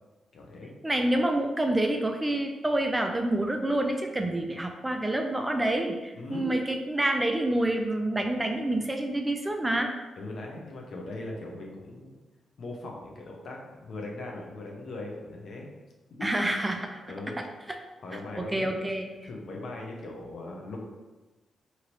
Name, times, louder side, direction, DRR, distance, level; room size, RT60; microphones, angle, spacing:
voice 1, 0.3-0.7 6.2-6.6 10.2-12.1 12.6-15.7 16.2-17.4 18.0-18.8 19.2-20.9, left 2 dB, 65° left, -1 dB, 0.7 m, -39 dB
voice 2, 0.8-9.9 16.2-17.0 18.4-19.1, right 1 dB, 15° right, 4 dB, 0.3 m, -27 dB
2.8 x 2.7 x 3.0 m, 1.1 s
cardioid pair, 80°, 0 cm